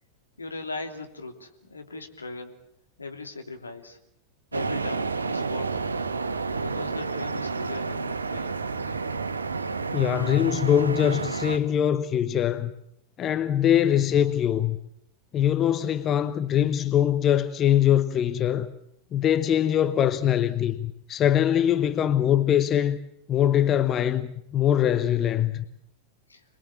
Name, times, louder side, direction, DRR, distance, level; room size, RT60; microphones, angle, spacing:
voice 1, 0.4-2.5 3.0-4.0 4.5-6.0 6.6-8.6 26.3-26.4, left 3 dB, 80° left, 3.1 m, -39 dB
sound 1, 4.5-11.6, right 4 dB, 75° right, 1.3 m, -30 dB
voice 2, 9.9-12.7 13.2-14.8 15.3-18.7 19.1-23.0 23.3-25.6, left 10 dB, 30° left, 1.0 m, -22 dB
26.5 x 21.5 x 7.3 m
figure-of-eight pair, 90°, 0 cm